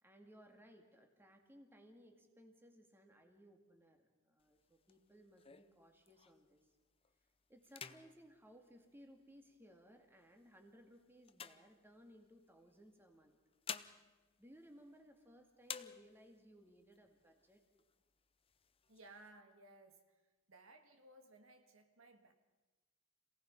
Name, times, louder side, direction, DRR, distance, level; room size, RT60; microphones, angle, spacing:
voice 1, 0.0-6.7 7.5-13.4 14.4-17.6, equal, 10° right, 3 dB, 2.1 m, -62 dB
sound 1, 4.4-6.6 7.0-7.3 7.6-9.5 10.2-12.4 13.2-15.3 15.6-16.5 16.9-17.0 17.3-18.0 18.4-19.3, left 7 dB, 25° left, 0.6 m, -52 dB
voice 2, 18.9-20.2 20.5-22.3, right 2 dB, 75° right, 6 dB, 1.7 m, -61 dB
27.0 x 17.5 x 5.4 m, 1.2 s
head